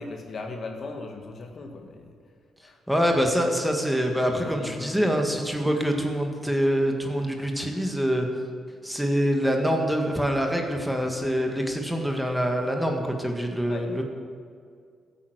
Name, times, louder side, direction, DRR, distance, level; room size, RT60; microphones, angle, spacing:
voice 1, 0.0-2.1 2.6-2.8 4.3-5.2 13.7-13.9, left 3 dB, 50° left, 3 dB, 2.0 m, -38 dB
voice 2, 2.9-8.3 8.8-14.0, equal, 5° right, 2 dB, 1.8 m, -25 dB
14.5 x 9.0 x 8.1 m, 2.2 s
cardioid pair, 100°, 0 cm